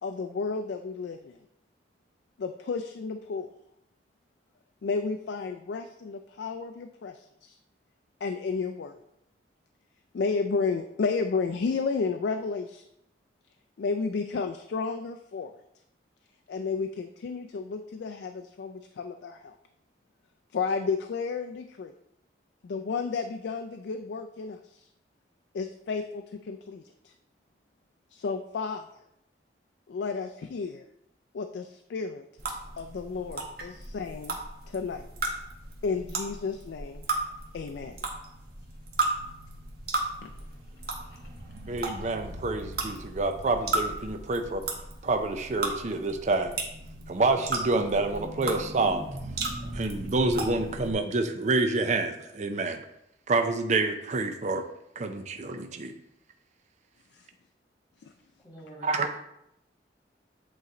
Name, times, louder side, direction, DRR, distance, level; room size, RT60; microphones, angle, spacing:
voice 1, 0.0-1.4 2.4-3.5 4.8-7.6 8.2-8.9 10.1-12.8 13.8-15.5 16.5-19.5 20.5-21.9 22.6-24.9 25.5-27.1 28.1-28.9 29.9-30.8 31.3-32.2 32.8-34.4 34.7-35.0 35.8-37.0 37.5-38.0 40.2-40.3 57.1-57.3 58.0-58.1, left 4 dB, 70° left, 6 dB, 0.4 m, -32 dB
sound 1, 32.4-50.9, right 2 dB, 60° right, 1.1 m, -35 dB
voice 2, 41.7-44.7 45.0-46.6 47.1-49.0 49.7-52.8 53.3-54.6 55.0-55.9 58.8-59.1, right 3 dB, 40° right, 6 dB, 0.5 m, -27 dB
voice 3, 58.4-59.2, right 1 dB, 25° left, -7 dB, 1.7 m, -47 dB
8.1 x 3.1 x 3.8 m, 0.78 s
head